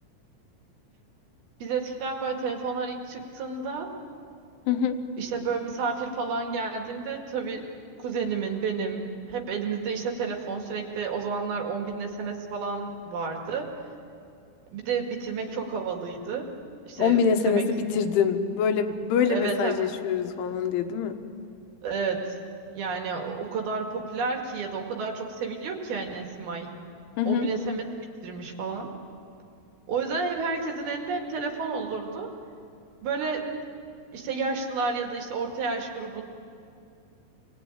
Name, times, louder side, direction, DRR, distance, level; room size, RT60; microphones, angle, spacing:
voice 1, 1.6-3.9 5.2-7.7 8.0-13.7 14.7-16.5 16.9-17.6 19.3-19.8 21.8-22.4 22.7-26.7 27.3-27.8 28.2-28.9 29.9-32.3 33.0-33.5 34.1-36.2, right 4 dB, 55° right, 2 dB, 3.5 m, -31 dB
voice 2, 4.7-5.0 17.0-21.2 27.2-27.5, left 6 dB, 75° left, 6 dB, 3.6 m, -24 dB
27.5 x 22.0 x 9.0 m, 2.6 s
omnidirectional pair, 6.0 m